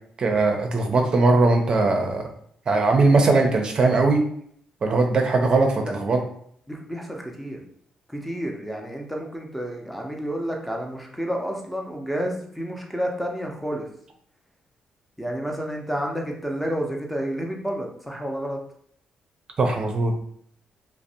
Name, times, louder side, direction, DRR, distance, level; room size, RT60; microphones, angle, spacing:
voice 1, 0.2-2.2 2.7-4.2 4.8-6.2 19.6-20.1, right 3 dB, 45° right, 3 dB, 0.5 m, -20 dB
voice 2, 6.7-7.6 8.1-13.9 15.2-18.6, equal, ahead, 0 dB, 0.6 m, -30 dB
2.5 x 2.0 x 2.7 m, 0.64 s
supercardioid pair, 70°, 2 cm